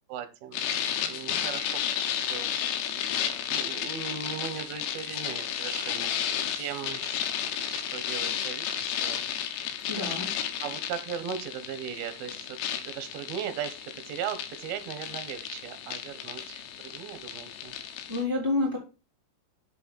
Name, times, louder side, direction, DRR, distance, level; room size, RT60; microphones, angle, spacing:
voice 1, 0.1-0.6 1.0-1.7 2.2-2.5 3.1-6.1 6.5-7.2 7.7-9.2 10.6-17.8, right 8 dB, 70° right, 10 dB, 2.7 m, -38 dB
sound 1, 0.5-18.2, left 9 dB, 80° left, 3.0 m, -33 dB
voice 2, 9.9-10.3 18.1-18.8, left 2 dB, 5° right, -3 dB, 2.4 m, -28 dB
7.0 x 6.6 x 4.1 m, 0.31 s
omnidirectional pair, 5.0 m